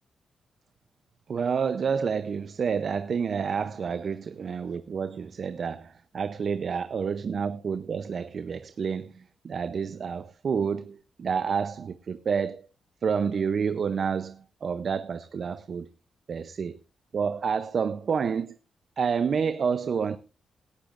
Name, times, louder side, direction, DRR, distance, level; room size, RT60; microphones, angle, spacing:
voice 1, 1.3-12.6 13.0-15.9 16.3-16.8 17.1-18.6 19.0-20.2, right 6 dB, 60° right, 0.6 m, -29 dB
18.0 x 11.5 x 2.5 m
cardioid pair, 75°, 0 cm